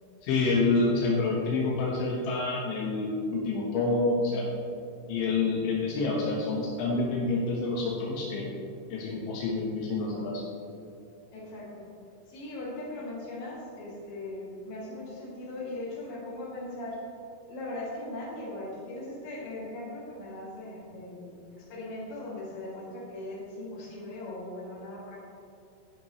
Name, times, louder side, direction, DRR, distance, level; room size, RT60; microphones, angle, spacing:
voice 1, 0.2-4.5 5.1-8.6 8.9-10.3, left 3 dB, 85° left, -4 dB, 3.7 m, -28 dB
voice 2, 11.3-11.9 12.3-17.0 17.5-25.2, left 2 dB, 60° left, -6 dB, 4.4 m, -39 dB
13.0 x 10.5 x 3.2 m, 2.6 s
omnidirectional pair, 5.2 m